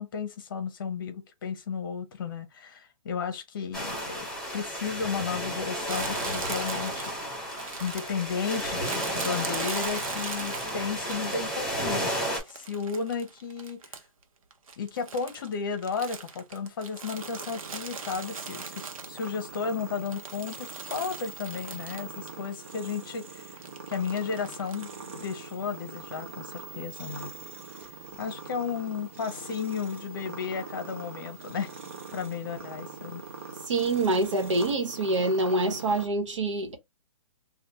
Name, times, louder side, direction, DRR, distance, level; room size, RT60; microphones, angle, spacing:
voice 1, 0.0-4.3 4.5-7.3 7.8-12.1 12.5-13.8 14.8-23.6 23.9-27.3 28.2-31.7 32.1-33.2, left 6 dB, 40° left, 0.8 m, -34 dB
sound 1, 3.7-12.4, equal, 5° left, 1.7 m, -32 dB
Crumpling crinkling, 5.9-11.6 12.1-14.2 14.5-19.6 19.9-22.4 22.6-22.7 23.6-24.9, right 5 dB, 80° right, 0.9 m, -41 dB
sound 2, 17.1-36.1, right 5 dB, 25° right, 0.4 m, -43 dB
voice 2, 33.7-36.8, right 2 dB, 60° right, 1.2 m, -26 dB
3.3 x 2.3 x 2.9 m
hypercardioid pair, 175°, 17 cm